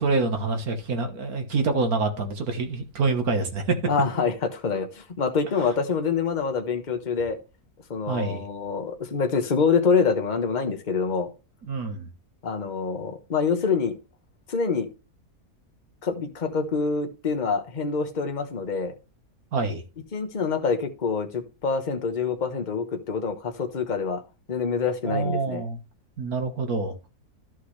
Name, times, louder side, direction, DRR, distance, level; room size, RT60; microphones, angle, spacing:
voice 1, 0.0-3.8 8.1-8.4 11.7-12.1 19.5-19.8 25.0-25.8 26.2-26.9, right 3 dB, 65° right, 1.8 m, -26 dB
voice 2, 3.9-7.4 7.9-11.3 12.4-14.0 14.5-14.9 16.0-18.9 20.1-24.2 24.5-25.6, left 5 dB, 30° left, 1.1 m, -26 dB
13.5 x 5.8 x 3.3 m
omnidirectional pair, 1.7 m